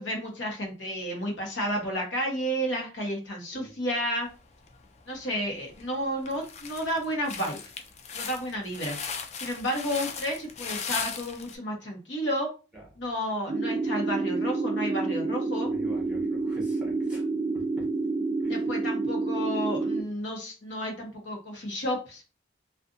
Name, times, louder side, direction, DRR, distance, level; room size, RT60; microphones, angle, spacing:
voice 1, 0.0-4.3 5.1-7.6 8.1-9.0 9.4-12.5 13.0-15.7 18.5-22.2, equal, 90° left, 0 dB, 1.1 m, -31 dB
sound 1, 4.7-5.2 5.7-5.8 6.3-11.6, left 6 dB, 35° left, 0.3 m, -37 dB
sound 2, 13.5-20.0, right 3 dB, 45° right, 0.3 m, -28 dB
voice 2, 15.7-17.2 17.8-17.9 18.4-18.5, right 1 dB, 5° right, -4 dB, 1.0 m, -46 dB
2.5 x 2.4 x 2.5 m, 0.32 s
head